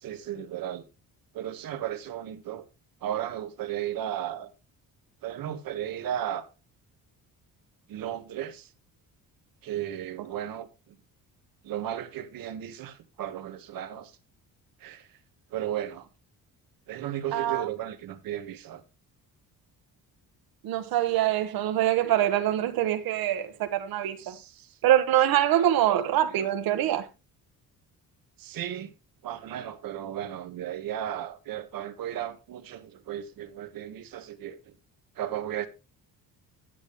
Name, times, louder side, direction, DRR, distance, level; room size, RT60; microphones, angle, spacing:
voice 1, 0.0-0.8 1.3-2.6 3.0-4.5 5.2-6.4 7.9-8.7 9.6-10.7 11.6-14.1 14.8-15.1 15.5-16.1 16.9-18.8 24.2-24.7 25.5-26.0 26.3-26.5 28.4-28.9 29.2-34.6 35.2-35.7, right 11 dB, 75° right, 1.6 m, -35 dB
voice 2, 17.3-17.7 20.6-24.3 24.8-27.0, right 12 dB, 90° right, 1.4 m, -24 dB
11.0 x 8.7 x 3.1 m
cardioid pair, 165°, 35 cm